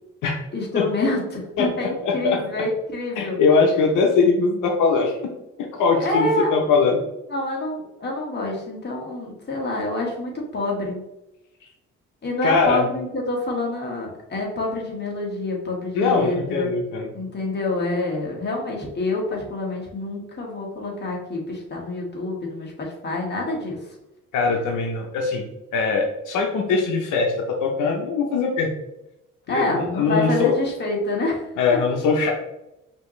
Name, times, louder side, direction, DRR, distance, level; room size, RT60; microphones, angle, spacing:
voice 1, 0.5-3.4 6.0-6.5 7.3-11.0 12.2-16.7 17.1-23.8 29.5-31.5, left 2 dB, 35° left, -2 dB, 1.6 m, -27 dB
voice 2, 1.6-2.4 3.2-5.2 5.6-7.0 12.4-12.8 15.9-17.1 24.3-25.4 25.7-28.7 29.5-30.5 31.6-32.3, left 4 dB, 85° left, 1 dB, 0.8 m, -21 dB
5.3 x 2.9 x 3.2 m, 0.90 s
cardioid pair, 90°, 30 cm